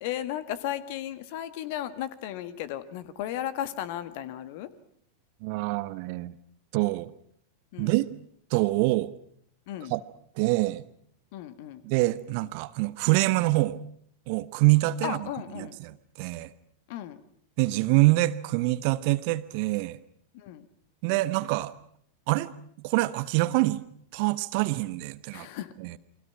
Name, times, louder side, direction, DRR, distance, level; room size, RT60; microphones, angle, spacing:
voice 1, 0.0-4.7 7.7-8.0 9.7-9.9 11.3-11.8 15.0-15.8 16.9-17.2 20.3-20.7 25.3-25.7, left 11 dB, 50° left, 13 dB, 1.7 m, -35 dB
voice 2, 5.4-6.3 6.7-7.1 7.8-8.1 8.5-9.1 9.9-10.0 10.3-10.8 11.8-13.8 14.3-15.3 15.5-16.5 17.6-20.0 21.0-21.7 22.3-22.5 22.8-23.8 24.1-25.5 25.8-26.0, right 20 dB, 45° right, 15 dB, 1.1 m, -25 dB
29.5 x 24.0 x 5.9 m, 0.65 s
figure-of-eight pair, 90°, 0 cm